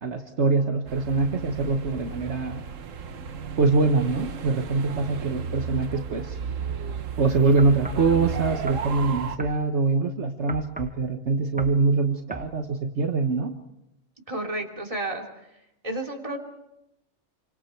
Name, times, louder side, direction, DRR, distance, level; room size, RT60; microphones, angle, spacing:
voice 1, 0.0-2.6 3.6-6.4 7.2-13.5, right 3 dB, 65° right, 4 dB, 1.6 m, -24 dB
sound 1, 0.9-9.4, right 6 dB, 90° right, 1.4 m, -34 dB
sound 2, 7.6-8.1 8.7-8.9 9.4-9.6 10.5-11.0 11.6-11.8 12.3-12.5, right 2 dB, 10° right, 0.9 m, -37 dB
voice 2, 14.3-15.2 15.8-16.4, right 1 dB, 25° right, 0 dB, 3.3 m, -31 dB
30.0 x 25.5 x 4.6 m, 0.84 s
omnidirectional pair, 1.3 m